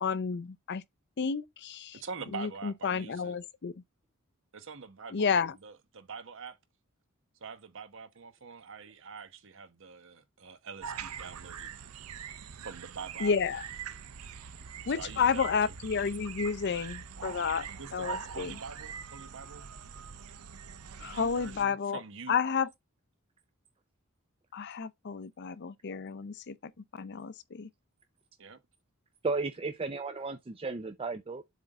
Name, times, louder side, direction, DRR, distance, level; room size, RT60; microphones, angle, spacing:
voice 1, 0.0-0.8 1.2-2.0 2.3-3.7 5.1-5.6 13.2-13.6 14.9-18.5 21.0-22.0 22.3-22.7 24.5-26.5 26.9-27.7, left 6 dB, 50° left, 0.5 m, -31 dB
voice 2, 1.9-3.3 4.5-6.6 7.4-11.7 12.6-13.3 14.9-15.7 17.8-19.7 21.0-22.4 28.4-28.6, right 5 dB, 60° right, 1.0 m, -45 dB
sound 1, 10.8-21.6, right 7 dB, 90° right, 0.6 m, -43 dB
voice 3, 29.2-31.4, right 3 dB, 25° right, 0.4 m, -34 dB
7.4 x 3.5 x 3.9 m
head